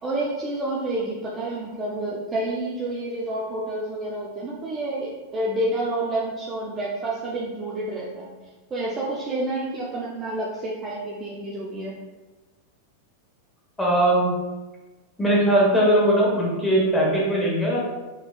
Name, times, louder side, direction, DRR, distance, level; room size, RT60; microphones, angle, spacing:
voice 1, 0.0-8.3 8.7-12.0, right 1 dB, 20° right, -4 dB, 0.7 m, -29 dB
voice 2, 13.8-14.3 15.2-17.8, right 1 dB, 10° left, -5 dB, 1.4 m, -20 dB
4.7 x 3.9 x 2.4 m, 1.2 s
figure-of-eight pair, 90°, 0 cm